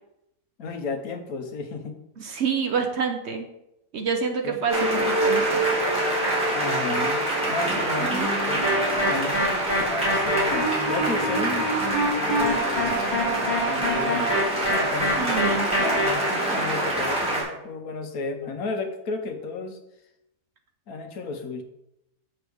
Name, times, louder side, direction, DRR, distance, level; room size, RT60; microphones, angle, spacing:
voice 1, 0.6-2.0 4.4-4.6 6.5-8.7 9.1-11.7 12.1-14.3 14.7-19.8 20.9-21.6, left 3 dB, 75° left, 6 dB, 1.3 m, -33 dB
voice 2, 2.2-3.5 3.9-5.6 8.0-8.3 15.2-15.7, right 5 dB, 55° right, 3 dB, 1.0 m, -27 dB
sound 1, 4.7-17.4, right 1 dB, 5° right, 3.0 m, -25 dB
sound 2, 8.6-16.1, equal, 15° left, 1.9 m, -26 dB
7.9 x 6.8 x 3.4 m, 0.86 s
omnidirectional pair, 1.6 m